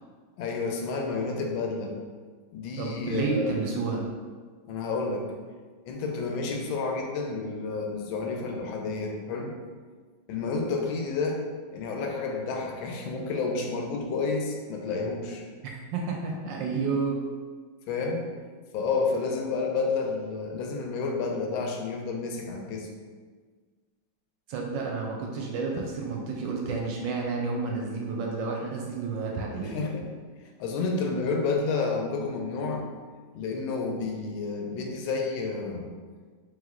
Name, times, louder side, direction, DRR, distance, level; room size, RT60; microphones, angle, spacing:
voice 1, 0.4-1.9 2.5-3.5 4.7-5.3 5.9-9.5 10.3-11.4 11.7-15.4 17.9-18.2 18.7-22.9 29.6-30.1 30.6-32.9 33.3-35.9, left 4 dB, 80° left, 1 dB, 1.3 m, -30 dB
voice 2, 2.8-4.0 15.9-17.2 24.5-29.8, right 4 dB, 75° right, 0 dB, 1.2 m, -30 dB
3.6 x 3.1 x 3.6 m, 1.5 s
omnidirectional pair, 2.2 m